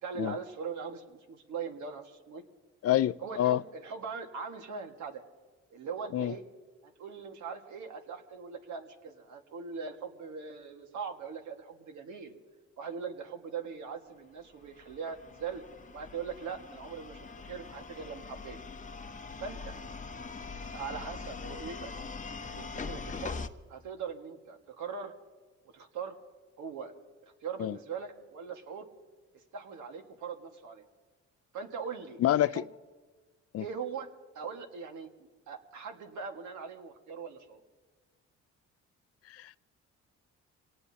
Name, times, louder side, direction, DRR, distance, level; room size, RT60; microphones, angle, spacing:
voice 1, 0.0-2.4 3.2-5.2 5.7-6.4 6.8-12.3 12.8-15.6 15.9-18.6 19.4-19.8 20.7-21.9 22.5-23.4 23.7-25.1 25.7-26.2 26.6-26.9 27.4-28.9 29.3-30.8 31.5-32.7 33.6-34.1 34.3-35.1 35.5-37.6, right 6 dB, 75° right, 4 dB, 1.8 m, -41 dB
voice 2, 2.8-3.6 6.1-6.3 27.6-27.8 32.2-32.6 33.5-33.6 39.3-39.5, left 12 dB, 50° left, 18 dB, 0.4 m, -27 dB
sound 1, 14.6-23.5, left 4 dB, 25° left, 0.8 m, -42 dB
25.5 x 18.5 x 2.8 m, 1.3 s
cardioid pair, 90°, 30 cm